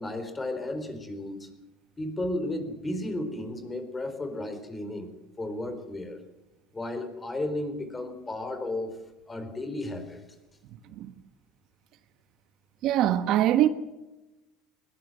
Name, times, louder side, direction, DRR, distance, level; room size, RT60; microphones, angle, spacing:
voice 1, 0.0-1.5 2.0-5.1 5.4-6.2 6.7-9.0 9.3-10.2, left 1 dB, 15° left, 4.3 m, -33 dB
voice 2, 12.8-13.7, right 12 dB, 55° right, 1.4 m, -22 dB
20.5 x 19.5 x 7.9 m
supercardioid pair, 125°, 0 cm